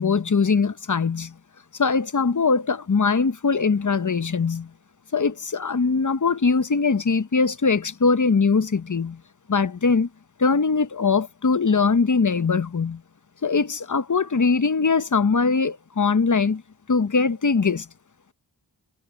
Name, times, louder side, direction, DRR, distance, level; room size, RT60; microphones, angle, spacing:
voice 1, 0.0-1.3 1.8-4.7 5.1-9.2 9.5-10.1 10.4-13.0 13.4-16.6 16.9-17.9, left 4 dB, 45° left, 0.8 m, -21 dB
wide cardioid pair, 50°, 43 cm